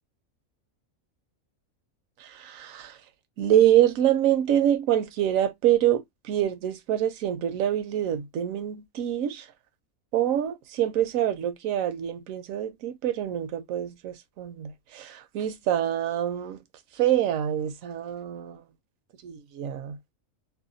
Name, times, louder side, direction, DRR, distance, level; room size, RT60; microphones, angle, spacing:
voice 1, 2.2-3.0 3.4-9.5 10.1-16.6 17.0-18.6 19.2-20.0, right 11 dB, 70° right, 0.9 m, -25 dB
2.8 x 2.2 x 2.5 m
omnidirectional pair, 1.5 m